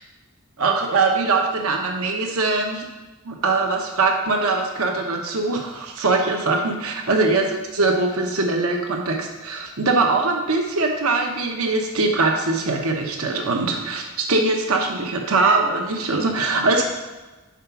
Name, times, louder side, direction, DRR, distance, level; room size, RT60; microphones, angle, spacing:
voice 1, 0.6-2.9 3.2-7.5 7.7-16.8, right 3 dB, 75° right, 2 dB, 1.0 m, -22 dB
7.4 x 4.8 x 5.9 m, 1.2 s
head